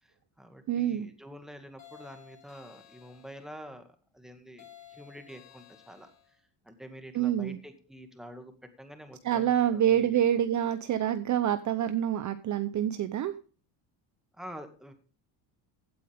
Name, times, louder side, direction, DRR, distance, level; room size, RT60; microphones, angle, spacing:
voice 1, 0.0-3.8 4.1-6.1 6.7-8.5 8.8-10.3 14.3-14.9, equal, ahead, 7 dB, 2.0 m, -47 dB
voice 2, 0.7-1.1 7.1-7.6 9.2-13.3, right 10 dB, 40° right, 11 dB, 0.8 m, -27 dB
sound 1, 1.8-3.5 4.6-6.4, left 10 dB, 35° left, 3.3 m, -54 dB
16.0 x 9.1 x 3.5 m, 0.37 s
cardioid pair, 135°, 47 cm